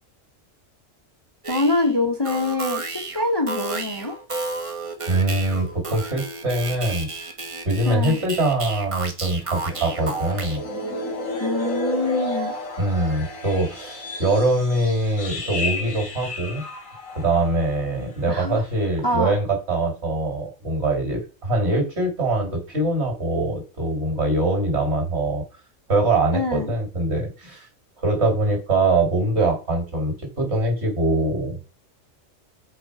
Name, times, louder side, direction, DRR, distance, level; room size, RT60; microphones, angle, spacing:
sound 1, 1.4-1.9 2.3-10.6, right 3 dB, 30° right, 0.9 m, -32 dB
voice 1, 1.5-4.2 7.8-8.2 11.4-12.5 18.3-18.6 19.0-19.3 26.3-26.7, left 2 dB, 20° left, 2 dB, 0.9 m, -24 dB
voice 2, 5.1-7.3 7.6-10.6 12.8-16.6 17.1-25.4 25.9-27.7 28.0-31.6, right 2 dB, 55° right, 1 dB, 2.9 m, -23 dB
sound 2, 9.5-18.1 18.3-18.6 19.0-19.2, left 2 dB, 85° left, 2.1 m, -32 dB
6.8 x 4.3 x 4.8 m, 0.32 s
omnidirectional pair, 1.4 m